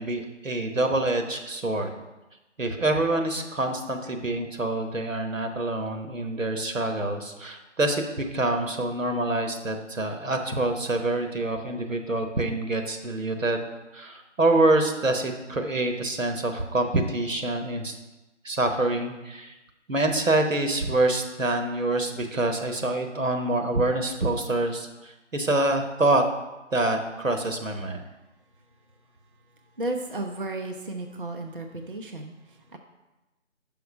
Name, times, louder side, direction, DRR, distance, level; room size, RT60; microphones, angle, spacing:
voice 1, 0.0-1.9 2.6-13.7 13.9-18.0 18.4-19.5 19.9-26.2 26.7-28.0, right 2 dB, 85° right, 5 dB, 1.1 m, -26 dB
voice 2, 28.5-32.8, right 2 dB, 45° right, 4 dB, 0.5 m, -35 dB
5.8 x 5.2 x 5.3 m, 1.0 s
figure-of-eight pair, 160°, 38 cm